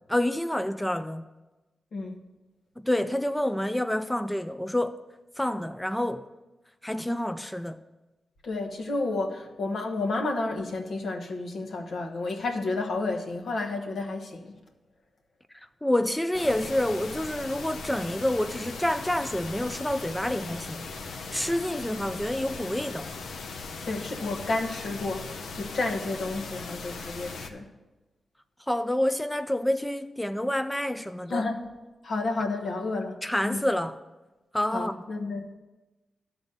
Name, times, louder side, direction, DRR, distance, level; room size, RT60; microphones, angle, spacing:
voice 1, 0.1-1.2 2.8-5.0 5.4-6.3 6.8-7.8 15.5-23.1 28.6-31.5 33.2-34.0 34.5-35.0, left 1 dB, 5° left, 0.4 m, -28 dB
voice 2, 8.4-14.5 23.9-27.7 31.3-31.6 32.0-33.2 33.4-33.6 34.7-35.6, left 3 dB, 70° left, 1.2 m, -31 dB
sound 1, 16.3-27.5, left 4 dB, 85° left, 0.6 m, -39 dB
12.0 x 4.1 x 6.7 m
cardioid pair, 75°, 0 cm